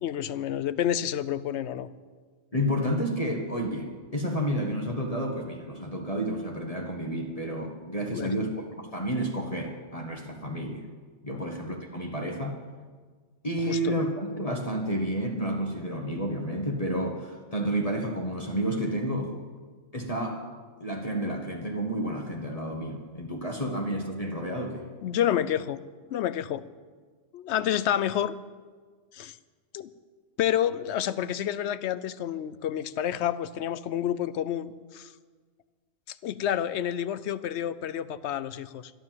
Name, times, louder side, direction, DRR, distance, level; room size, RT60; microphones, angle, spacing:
voice 1, 0.0-1.9 8.1-8.5 11.3-11.4 13.7-13.9 25.0-25.8 26.1-26.6 27.3-28.3 29.1-29.4 29.7-29.9 30.4-35.1 36.1-38.9, left 10 dB, 65° left, 15 dB, 0.8 m, -29 dB
voice 2, 2.5-10.9 11.2-12.6 13.4-19.3 19.9-20.4 20.8-24.9, equal, 30° left, 1 dB, 1.4 m, -30 dB
12.0 x 11.5 x 7.6 m, 1.5 s
omnidirectional pair, 1.3 m